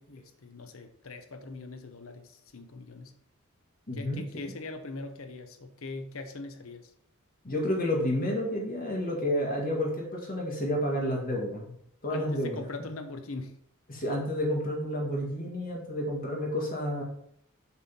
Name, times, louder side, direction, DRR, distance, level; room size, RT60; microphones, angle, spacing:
voice 1, 0.0-3.1 3.9-6.9 12.1-13.6, left 3 dB, 80° left, 7 dB, 0.9 m, -41 dB
voice 2, 3.9-4.5 7.4-11.7 12.0-12.9 13.9-17.0, left 1 dB, 45° left, -2 dB, 1.9 m, -30 dB
6.9 x 4.1 x 5.4 m, 0.69 s
head